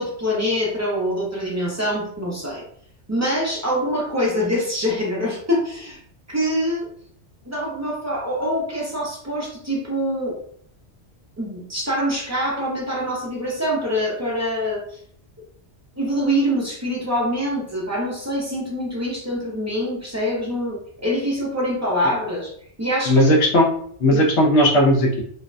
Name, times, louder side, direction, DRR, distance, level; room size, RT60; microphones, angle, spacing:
voice 1, 0.0-2.6 3.1-6.0 6.3-6.9 7.4-10.3 11.4-14.8 16.0-22.5 22.8-23.3 24.1-24.2, equal, 25° right, -5 dB, 0.3 m, -24 dB
voice 2, 23.1-23.7 24.0-25.2, equal, 75° left, 0 dB, 0.9 m, -16 dB
2.5 x 2.1 x 2.4 m, 0.62 s
omnidirectional pair, 1.2 m